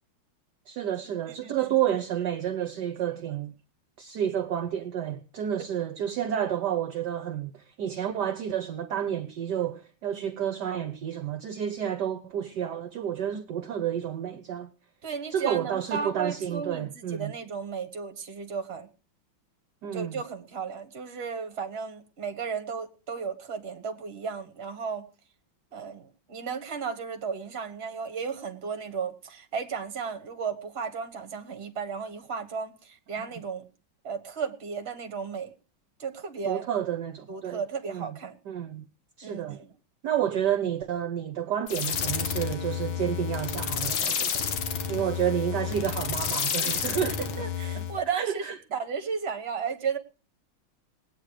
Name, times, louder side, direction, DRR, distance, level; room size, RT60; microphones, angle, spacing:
voice 1, 0.7-3.5 4.0-14.7 15.3-17.3 19.8-20.2 36.4-37.6 37.9-38.2 38.5-38.8 39.2-39.6 40.0-44.4 44.9-47.4 47.7-47.8 48.1-48.6, right 10 dB, 65° right, 1.3 m, -30 dB
voice 2, 1.4-1.7 15.0-18.9 19.9-25.1 25.7-33.7 34.0-35.5 36.0-36.7 37.3-38.4 39.2-39.7 46.9-50.0, right 6 dB, 35° right, 1.5 m, -34 dB
sound 1, 41.7-48.0, left 7 dB, 90° left, 2.1 m, -30 dB
19.5 x 9.1 x 4.9 m
omnidirectional pair, 2.2 m